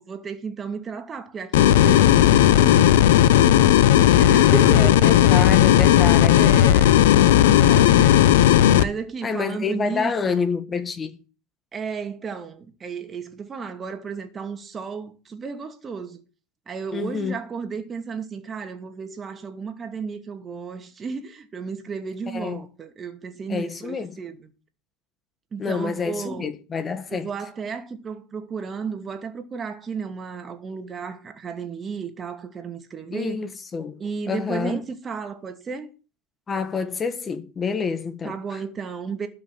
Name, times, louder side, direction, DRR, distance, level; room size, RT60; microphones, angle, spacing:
voice 1, 0.0-3.0 3.3-5.6 6.4-10.5 11.7-16.2 16.7-24.5 25.5-26.5 27.1-33.4 34.0-35.9 38.2-39.3, right 5 dB, 30° right, 2.5 m, -33 dB
sound 1, 1.5-8.8, left 11 dB, 70° left, 0.8 m, -15 dB
voice 2, 4.4-6.5 9.2-11.2 16.9-17.3 22.3-22.6 23.5-24.2 25.6-27.3 33.1-34.0 34.3-34.8 36.5-38.6, left 5 dB, 25° left, 1.6 m, -28 dB
12.5 x 5.7 x 8.9 m
hypercardioid pair, 85°, 0 cm